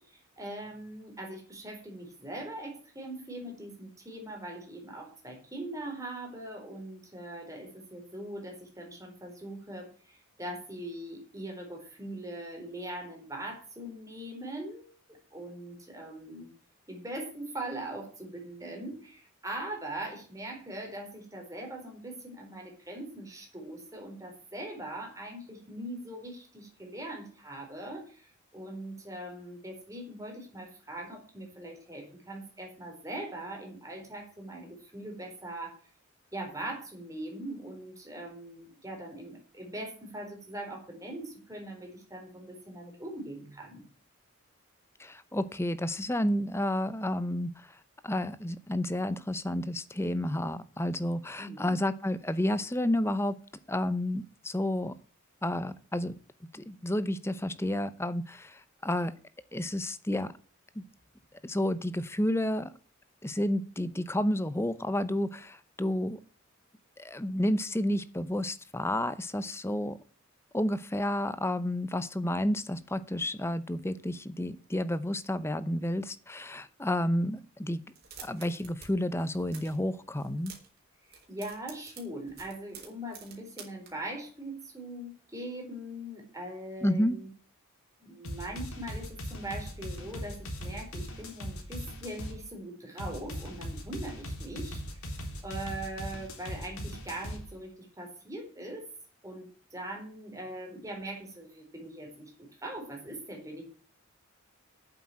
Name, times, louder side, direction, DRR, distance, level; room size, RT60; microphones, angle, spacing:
voice 1, 0.1-16.5 16.9-35.8 36.3-43.8 51.4-51.7 81.1-87.3 88.0-94.8 95.4-98.9 99.2-103.6, right 1 dB, 15° right, 1 dB, 4.0 m, -41 dB
voice 2, 45.0-47.7 48.0-53.4 53.7-54.9 55.4-56.1 56.5-59.1 59.5-60.3 60.8-60.9 61.4-62.7 63.2-66.2 67.0-70.0 70.5-77.8 78.2-80.5 86.8-87.2, left 1 dB, 10° left, 14 dB, 0.7 m, -30 dB
sound 1, 77.9-78.9 79.1-79.8 80.2-80.8 81.1-83.9, right 7 dB, 45° right, 4.0 m, -48 dB
sound 2, 88.2-92.4 93.0-97.4, equal, 90° left, 3.6 m, -39 dB
8.8 x 7.9 x 8.5 m, 0.40 s
head